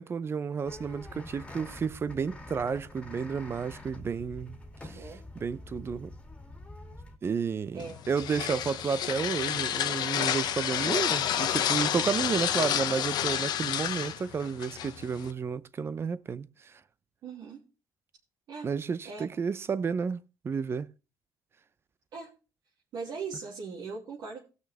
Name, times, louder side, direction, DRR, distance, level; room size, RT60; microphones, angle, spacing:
voice 1, 0.0-4.6 4.8-6.1 7.2-16.8 18.6-20.9, right 6 dB, 35° right, 0.7 m, -32 dB
sound 1, 0.6-7.2, left 2 dB, 15° left, 2.3 m, -46 dB
voice 2, 4.8-5.2 7.7-8.0 17.2-17.6 18.5-18.7 19.0-19.3 22.1-22.3 22.9-24.4, right 4 dB, 65° right, 2.6 m, -39 dB
sound 2, 7.8-15.3, left 10 dB, 65° left, 0.9 m, -30 dB
18.5 x 6.3 x 3.4 m
cardioid pair, 110°, 8 cm